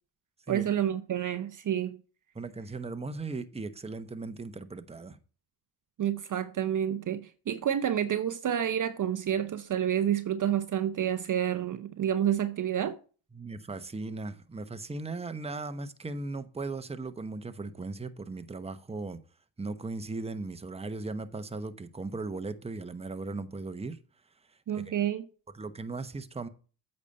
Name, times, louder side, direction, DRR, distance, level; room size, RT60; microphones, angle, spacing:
voice 1, 0.5-2.0 6.0-13.0 24.7-25.2, right 10 dB, 40° right, 0.8 m, -29 dB
voice 2, 2.3-5.2 13.3-19.2 19.6-24.0 24.7-24.9 25.5-26.5, right 3 dB, 15° right, 1.0 m, -37 dB
8.4 x 5.4 x 5.4 m
hypercardioid pair, 55°, 47 cm